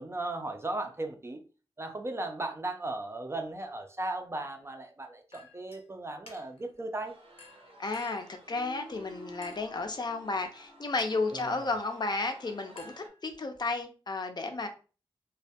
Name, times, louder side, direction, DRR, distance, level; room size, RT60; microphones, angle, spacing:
voice 1, 0.0-1.4 1.8-7.1 11.3-11.6, right 2 dB, 25° right, 0.4 m, -36 dB
Chink clink, 5.3-5.8 6.3-6.7 7.4-8.4 9.4-9.8 11.0-11.3 12.8-13.6, left 3 dB, 90° left, 0.6 m, -53 dB
sound 1, 7.1-13.1, right 2 dB, 80° right, 0.7 m, -52 dB
voice 2, 7.8-14.7, left 3 dB, 50° left, 0.5 m, -33 dB
2.2 x 2.1 x 2.7 m
wide cardioid pair, 85°, 10 cm